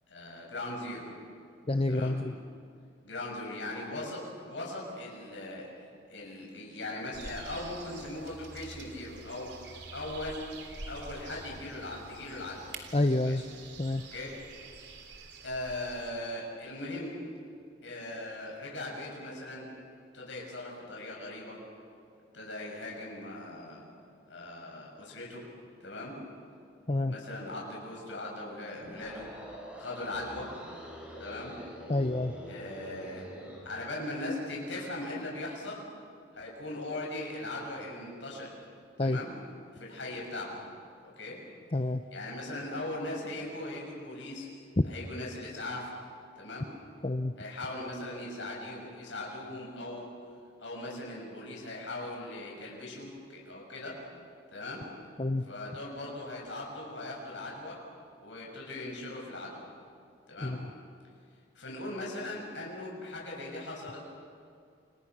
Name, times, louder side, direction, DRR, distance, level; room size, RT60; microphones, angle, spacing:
voice 1, 0.1-1.1 1.9-2.2 3.0-10.4 10.9-12.7 13.2-13.4 14.1-14.4 15.4-17.1 17.8-19.7 20.1-21.6 22.3-23.8 24.3-25.4 25.8-26.2 27.1-29.3 29.8-30.5 31.2-31.5 32.5-33.3 33.6-35.8 36.3-38.5 39.0-39.3 39.7-40.6 41.0-41.4 42.1-44.5 44.8-46.0 46.4-46.7 47.4-50.1 50.6-54.0 54.5-54.9 55.4-57.8 58.2-59.7 60.3-60.5 61.5-64.0, left 2 dB, 75° left, -2 dB, 7.2 m, -39 dB
voice 2, 1.7-2.3 12.9-13.4 13.8-14.0 26.9-27.1 31.9-32.3 39.0-39.2 41.7-42.0 47.0-47.3 55.2-55.4 60.4-60.6, left 2 dB, 30° left, 8 dB, 0.7 m, -28 dB
sound 1, 7.1-16.1, right 3 dB, 60° right, 3.3 m, -47 dB
sound 2, 28.8-33.7, equal, 5° right, 5.3 m, -45 dB
30.0 x 29.0 x 6.2 m, 2.4 s
head